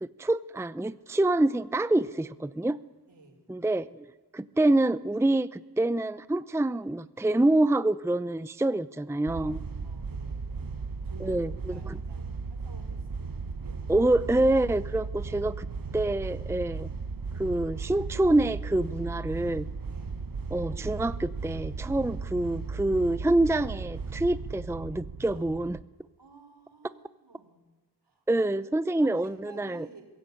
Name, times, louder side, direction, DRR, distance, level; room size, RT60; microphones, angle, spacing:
voice 1, 0.0-2.8 3.5-9.6 11.2-12.0 13.9-15.7 15.9-16.9 17.3-19.7 20.5-25.8 28.3-29.9, right 1 dB, 5° right, 15 dB, 0.6 m, -26 dB
voice 2, 3.1-3.5 9.8-11.4 11.7-14.1 19.9-20.2 25.3-25.5 26.2-27.6 28.0-28.5 28.9-30.2, right 3 dB, 75° right, 4 dB, 5.0 m, -53 dB
sound 1, 9.3-25.8, right 4 dB, 55° right, 1.1 m, -36 dB
22.0 x 17.0 x 8.6 m, 1.2 s
cardioid pair, 45°, 41 cm